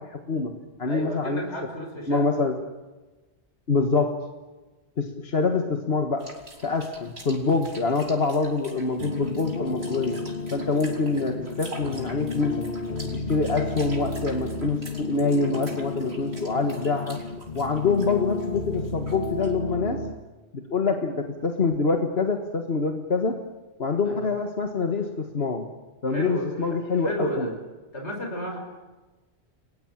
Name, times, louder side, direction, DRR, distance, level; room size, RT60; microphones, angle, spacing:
voice 1, 0.0-1.4 2.1-2.6 3.7-4.2 5.0-6.3 6.6-10.2 10.5-12.7 13.0-17.2 17.5-20.1 20.5-23.4 23.8-25.7 26.0-27.5, left 4 dB, 65° left, 4 dB, 1.8 m, -25 dB
voice 2, 0.9-2.3 24.0-24.3 26.1-27.5 27.9-28.6, equal, 85° left, 2 dB, 7.1 m, -33 dB
sound 1, 6.2-19.8, right 1 dB, 70° right, 4.0 m, -45 dB
sound 2, 9.0-20.2, left 3 dB, 45° left, 1.8 m, -32 dB
29.5 x 21.5 x 9.0 m, 1.2 s
omnidirectional pair, 1.1 m